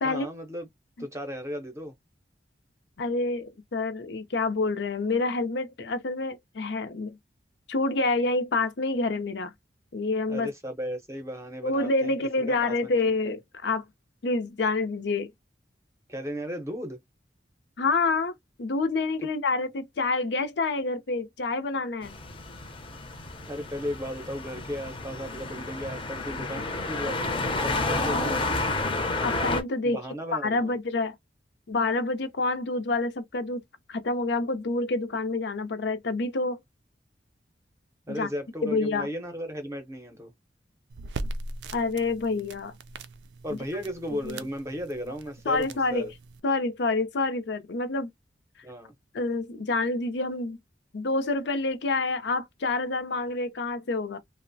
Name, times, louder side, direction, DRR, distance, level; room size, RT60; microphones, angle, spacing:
voice 1, 0.0-0.7 1.0-1.9 10.3-12.2 12.5-12.9 13.2-13.3 16.1-17.0 19.2-19.3 23.5-28.4 29.8-30.7 38.1-40.3 43.4-46.1 48.6-48.9, equal, 15° right, 0.6 m, -35 dB
voice 2, 3.0-7.2 7.7-9.5 9.9-10.5 11.6-13.8 14.2-15.3 17.8-18.3 18.6-22.1 29.2-30.0 30.3-31.1 31.7-33.6 33.9-36.6 38.2-38.3 38.6-39.1 41.7-42.7 44.2-44.4 45.5-46.1 46.4-48.1 49.1-50.6 50.9-54.2, left 3 dB, 75° left, 0.5 m, -27 dB
sound 1, 22.0-29.6, left 2 dB, 30° left, 0.6 m, -30 dB
sound 2, 40.9-46.4, right 2 dB, 75° right, 0.4 m, -40 dB
2.9 x 2.0 x 2.6 m
head